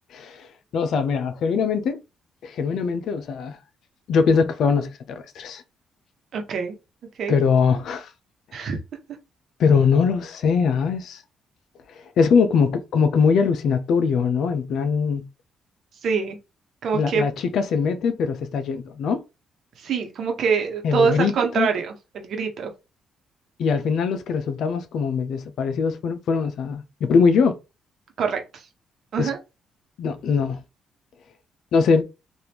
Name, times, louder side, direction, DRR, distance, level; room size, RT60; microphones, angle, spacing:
voice 1, 0.1-0.5 0.7-2.0 2.4-3.5 4.1-5.6 7.3-8.1 9.6-11.2 12.2-15.3 16.9-19.2 20.8-21.7 23.6-27.6 29.2-29.3 30.0-30.6 31.7-32.0, left 5 dB, 70° left, 0.6 m, -21 dB
voice 2, 6.3-6.8 7.2-7.4 8.5-8.8 16.0-16.4 16.8-17.3 19.8-22.7 28.2-28.4 29.1-29.4, right 5 dB, 65° right, 1.0 m, -24 dB
3.4 x 2.6 x 2.9 m
cardioid pair, 90°, 0 cm